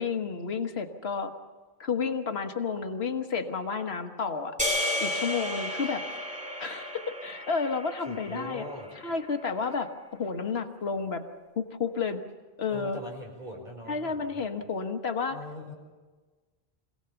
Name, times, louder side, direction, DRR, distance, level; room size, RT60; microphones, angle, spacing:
voice 1, 0.0-1.3 1.8-4.6 5.0-6.0 6.6-8.6 9.0-9.9 10.2-11.2 11.6-12.2 12.6-13.0 13.9-15.4, left 5 dB, 80° left, 7 dB, 1.5 m, -31 dB
sound 1, 4.6-9.0, left 1 dB, 5° right, 2.8 m, -33 dB
voice 2, 8.1-8.9 12.7-14.4 15.3-15.7, left 1 dB, 50° right, -1 dB, 5.3 m, -41 dB
25.5 x 17.0 x 7.0 m, 1.3 s
omnidirectional pair, 1.0 m